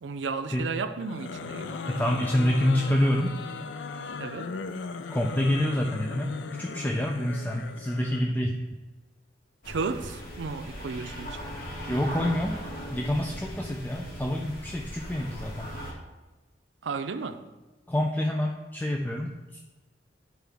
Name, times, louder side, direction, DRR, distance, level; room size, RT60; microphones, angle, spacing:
voice 1, 0.0-1.9 4.2-4.6 9.7-11.6 16.8-17.5, right 4 dB, 90° right, 0.5 m, -34 dB
sound 1, 1.0-8.3, left 4 dB, 85° left, 0.4 m, -37 dB
voice 2, 1.9-3.3 5.1-8.6 11.9-12.6 12.9-15.7 17.9-19.6, left 1 dB, 10° left, 0.4 m, -27 dB
sound 2, 9.6-15.9, equal, 55° left, 1.6 m, -39 dB
10.0 x 4.5 x 3.5 m
head